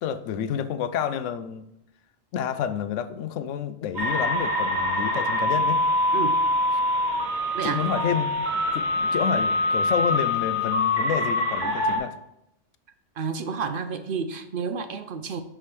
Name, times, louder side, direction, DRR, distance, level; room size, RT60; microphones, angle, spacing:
voice 1, 0.0-1.7 2.3-5.8 7.6-12.1, left 8 dB, 85° left, 12 dB, 0.9 m, -29 dB
sound 1, 4.0-12.0, left 1 dB, 35° right, 1.7 m, -24 dB
voice 2, 13.2-15.4, right 5 dB, 55° right, 10 dB, 0.7 m, -30 dB
6.4 x 4.9 x 5.9 m, 0.84 s
omnidirectional pair, 1.3 m